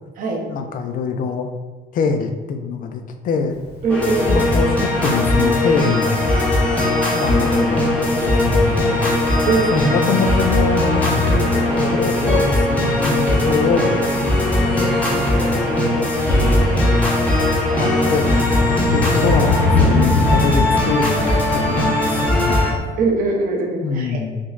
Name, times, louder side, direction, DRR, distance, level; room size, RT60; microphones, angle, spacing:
voice 1, 0.5-1.5 1.9-3.6 4.2-6.3 7.1-7.9 8.2-9.0 9.7-11.2 11.9-13.9 14.6-15.1 16.3-16.9 17.7-22.6 23.8-24.4, left 5 dB, 55° left, 6 dB, 0.4 m, -23 dB
Thunder, 3.5-22.9, left 2 dB, 80° left, 0.8 m, -28 dB
voice 2, 3.8-4.3 9.4-9.7 23.0-24.2, right 4 dB, 55° right, 2 dB, 0.7 m, -21 dB
sound 1, 3.9-22.7, left 1 dB, 10° left, 0.8 m, -18 dB
6.0 x 2.1 x 2.4 m, 1.3 s
cardioid pair, 110°, 17 cm